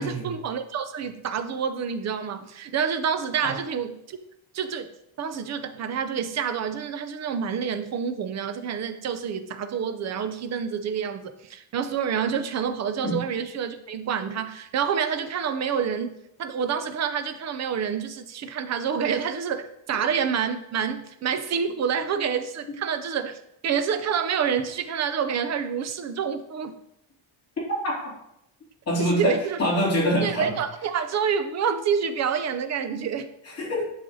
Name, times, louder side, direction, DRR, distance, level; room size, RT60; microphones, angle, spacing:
voice 1, 0.0-4.2 4.5-4.9 5.2-26.7 29.0-29.6 30.2-33.3, right 7 dB, 35° right, 9 dB, 0.4 m, -28 dB
voice 2, 28.9-30.5 33.4-33.8, equal, 30° left, -6 dB, 2.6 m, -25 dB
7.4 x 6.4 x 2.7 m, 0.78 s
cardioid pair, 175°, 48 cm